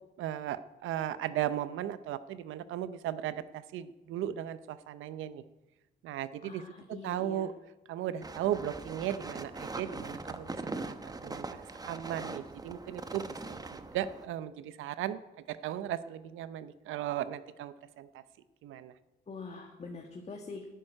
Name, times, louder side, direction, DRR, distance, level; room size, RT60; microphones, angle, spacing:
voice 1, 0.2-5.4 6.0-6.6 6.9-7.5 7.9-10.9 11.2-15.2 15.5-18.2 18.6-18.9, right 11 dB, 85° right, 14 dB, 0.7 m, -36 dB
voice 2, 6.4-7.5 19.3-20.7, left 4 dB, 35° left, 3 dB, 1.6 m, -44 dB
sound 1, 8.2-14.3, right 3 dB, 20° right, 1.0 m, -41 dB
11.0 x 9.2 x 9.8 m, 1.1 s
cardioid pair, 90°, 20 cm